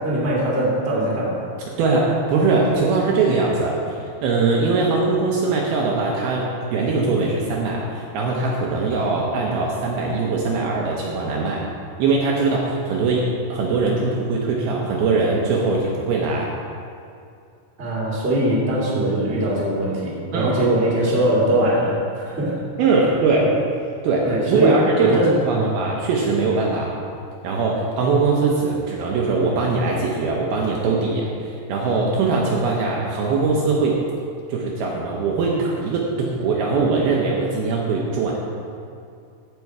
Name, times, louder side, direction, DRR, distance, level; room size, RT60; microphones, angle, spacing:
voice 1, 0.0-1.4 17.8-22.6 24.2-25.7, right 1 dB, 20° right, -6 dB, 1.8 m, -21 dB
voice 2, 1.7-11.7 12.0-16.5 20.3-20.5 22.8-23.5 24.0-26.9 27.4-34.0 34.5-38.4, right 3 dB, 75° right, -2 dB, 2.6 m, -21 dB
15.0 x 6.1 x 4.7 m, 2.4 s
omnidirectional pair, 5.0 m